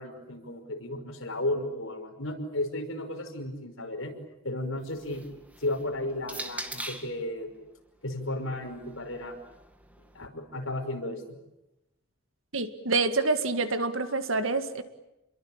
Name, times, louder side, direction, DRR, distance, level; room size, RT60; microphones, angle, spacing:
voice 1, 0.0-4.1 4.4-5.2 5.6-7.5 8.0-9.4 10.1-11.4, left 1 dB, 70° left, 3 dB, 5.7 m, -34 dB
sound 1, 4.7-7.2 8.2-10.3, right 1 dB, 5° right, 2.1 m, -43 dB
voice 2, 12.5-14.8, right 3 dB, 70° right, 9 dB, 2.0 m, -27 dB
29.0 x 22.5 x 8.9 m, 0.94 s
head